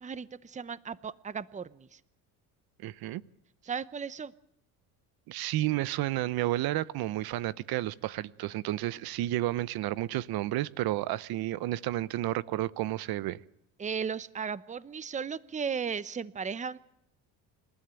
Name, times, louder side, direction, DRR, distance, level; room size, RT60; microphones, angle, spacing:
voice 1, 0.0-2.0 3.6-4.3 13.8-16.8, right 6 dB, 20° right, 0.8 m, -36 dB
voice 2, 2.8-3.2 5.3-13.4, right 15 dB, 65° right, 0.8 m, -31 dB
27.0 x 13.0 x 8.9 m
cardioid pair, 100°, 39 cm